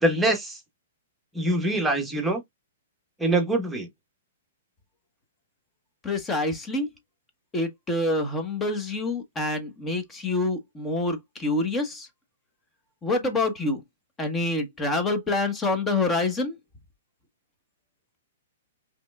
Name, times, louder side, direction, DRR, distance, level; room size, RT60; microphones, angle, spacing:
voice 1, 0.0-0.6 1.3-2.4 3.2-3.9, right 1 dB, 5° right, 1.2 m, -24 dB
voice 2, 6.0-6.9 7.5-12.1 13.0-13.8 14.2-16.6, left 2 dB, 15° left, 1.2 m, -26 dB
4.9 x 3.2 x 2.3 m
hypercardioid pair, 130°, 0 cm